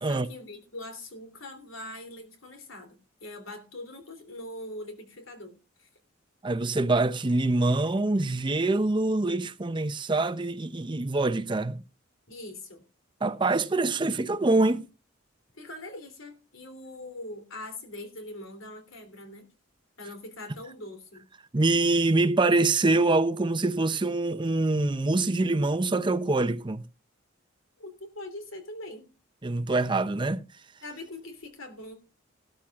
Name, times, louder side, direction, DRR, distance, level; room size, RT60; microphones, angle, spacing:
voice 1, 0.0-5.9 12.3-12.8 15.5-19.5 20.0-21.2 27.8-29.1 30.8-32.0, left 1 dB, 80° left, 3.1 m, -42 dB
voice 2, 6.4-11.8 13.2-14.8 21.5-26.8 29.4-30.4, right 2 dB, 25° right, 0.6 m, -25 dB
16.5 x 13.0 x 2.4 m
head